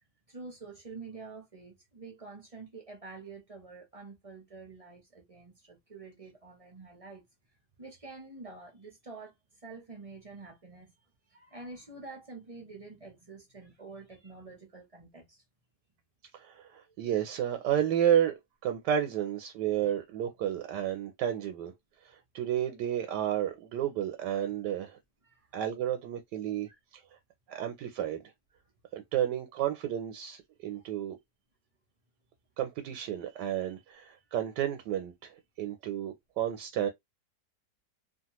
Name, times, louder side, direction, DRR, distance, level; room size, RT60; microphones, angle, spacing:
voice 1, 0.3-7.2 7.8-9.3 9.6-10.9 11.3-15.4 16.7-16.9 25.2-25.5 26.7-26.8 30.7-30.9, right 3 dB, 45° right, 0.4 m, -47 dB
voice 2, 16.3-21.7 22.3-25.0 25.5-26.7 26.9-27.0 27.5-28.2 28.9-31.2 32.6-35.3 35.6-36.9, right 10 dB, 90° right, 1.2 m, -31 dB
2.8 x 2.4 x 2.9 m
omnidirectional pair, 1.8 m